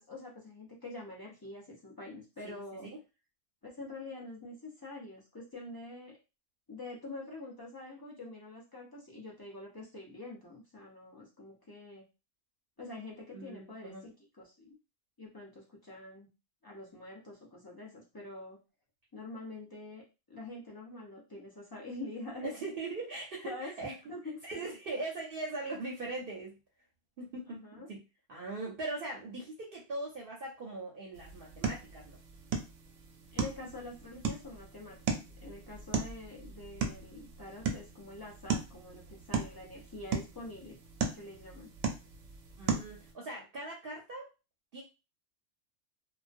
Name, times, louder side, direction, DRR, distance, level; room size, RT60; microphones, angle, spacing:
voice 1, 0.0-2.9 3.6-6.2 6.7-12.0 12.8-14.8 15.2-16.3 16.6-18.6 19.1-22.5 23.4-23.7 24.1-24.4 27.5-27.9 33.3-35.0 35.4-40.8 41.1-41.7, left 2 dB, 35° left, -3 dB, 0.3 m, -46 dB
voice 2, 2.4-3.0 13.3-14.0 22.4-23.9 24.4-26.6 27.2-27.6 27.9-28.0 28.3-32.2 42.6-44.3 44.7-44.8, right 2 dB, 60° right, -1 dB, 0.7 m, -40 dB
sound 1, 31.1-43.1, right 5 dB, 90° right, 0.9 m, -37 dB
2.4 x 2.1 x 2.5 m, 0.29 s
omnidirectional pair, 1.3 m